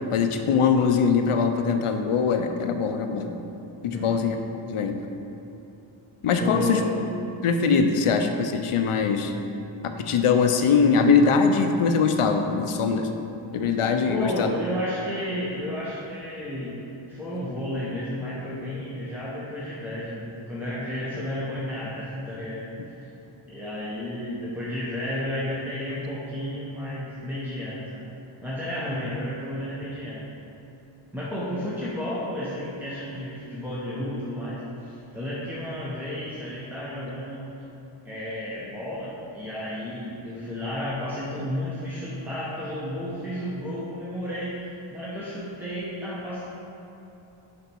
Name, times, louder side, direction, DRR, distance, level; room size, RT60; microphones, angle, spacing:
voice 1, 0.1-3.3 3.8-4.4 4.7-5.0 6.2-6.8 7.4-9.3 9.8-13.1 13.5-14.5, left 5 dB, 90° left, 6 dB, 0.7 m, -22 dB
voice 2, 3.9-4.3 6.4-6.9 14.0-16.8 17.1-22.7 23.0-23.1 23.5-28.0 28.4-30.2 31.1-37.5 38.0-46.4, left 1 dB, 5° right, -8 dB, 0.9 m, -32 dB
6.7 x 5.3 x 4.5 m, 3.0 s
wide cardioid pair, 115°, 50 cm